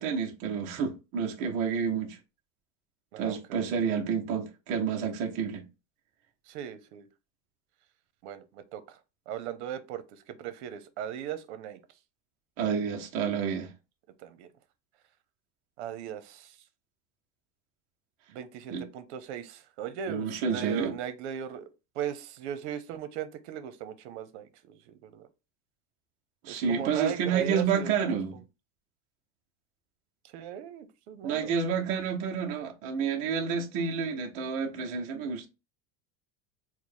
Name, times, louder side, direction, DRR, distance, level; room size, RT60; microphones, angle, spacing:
voice 1, 0.0-2.2 3.2-5.6 12.6-13.7 18.7-18.9 20.1-20.9 26.4-28.3 31.2-35.5, right 6 dB, 25° right, 0.3 m, -29 dB
voice 2, 3.1-3.6 6.5-7.1 8.2-9.0 9.3-11.8 14.2-14.5 15.8-16.5 18.3-21.7 21.9-25.3 26.5-28.2 30.3-31.5, right 10 dB, 65° right, 0.7 m, -38 dB
4.4 x 2.0 x 3.2 m
supercardioid pair, 175°, 37 cm